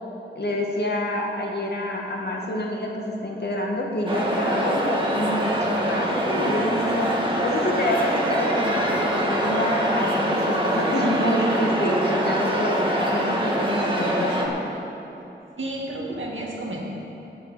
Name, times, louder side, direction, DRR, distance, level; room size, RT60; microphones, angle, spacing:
voice 1, 0.4-14.5, left 1 dB, 55° left, -1 dB, 1.8 m, -27 dB
sound 1, 4.1-14.5, right 1 dB, 25° right, 1.8 m, -24 dB
voice 2, 15.6-16.8, right 1 dB, 80° right, -3 dB, 2.2 m, -31 dB
9.2 x 7.8 x 9.3 m, 2.9 s
wide cardioid pair, 70°, 20 cm